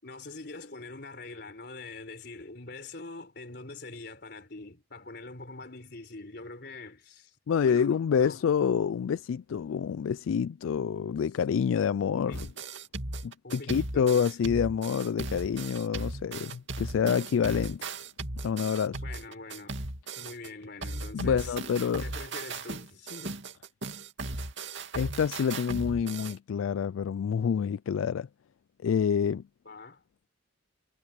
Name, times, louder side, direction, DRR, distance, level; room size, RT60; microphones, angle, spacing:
voice 1, 0.0-7.4 7.6-8.4 12.2-12.5 13.4-14.3 19.0-19.9 20.2-21.6 22.0-23.5 29.6-30.0, left 3 dB, 55° left, 4.0 m, -44 dB
voice 2, 7.5-12.4 13.2-17.9 18.4-19.0 21.1-22.0 24.9-28.3 28.8-29.4, left 7 dB, 80° left, 0.3 m, -27 dB
sound 1, 12.3-20.5 20.8-26.3, right 2 dB, 65° right, 2.7 m, -37 dB
head